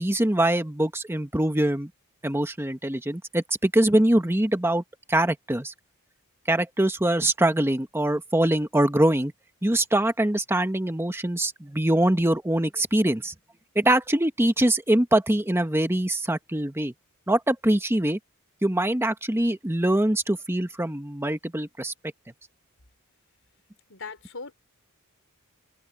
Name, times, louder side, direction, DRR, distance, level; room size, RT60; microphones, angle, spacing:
voice 1, 0.0-1.9 2.2-4.8 5.1-5.7 6.5-9.3 9.6-13.3 13.7-16.9 17.3-18.2 18.6-21.9, right 1 dB, 10° right, 1.3 m, -23 dB
voice 2, 23.9-24.5, left 4 dB, 60° left, 4.7 m, -39 dB
head